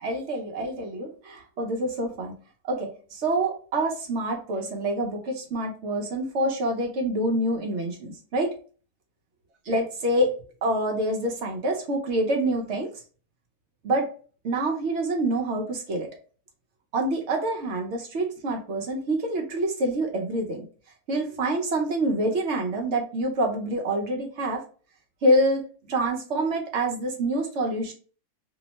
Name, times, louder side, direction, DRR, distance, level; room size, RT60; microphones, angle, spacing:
voice 1, 0.0-2.4 2.6-8.5 9.7-10.3 10.6-12.9 13.8-14.1 14.4-16.1 16.9-20.7 21.1-24.6 25.2-27.9, right 1 dB, 60° right, 1 dB, 0.8 m, -26 dB
2.8 x 2.0 x 2.7 m, 0.39 s
omnidirectional pair, 1.6 m